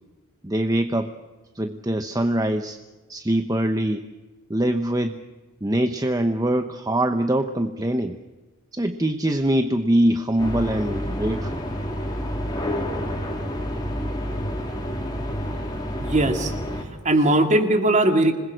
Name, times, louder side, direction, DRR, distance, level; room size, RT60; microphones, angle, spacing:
voice 1, 0.4-1.1 1.6-2.8 3.1-4.1 4.5-5.2 5.6-8.2 8.7-11.6, right 1 dB, 15° right, 8 dB, 0.9 m, -23 dB
sound 1, 10.4-16.8, equal, 20° left, 3.9 m, -29 dB
voice 2, 16.0-16.5 17.0-18.3, right 1 dB, 35° right, 6 dB, 2.3 m, -19 dB
26.5 x 21.0 x 6.4 m, 1.2 s
head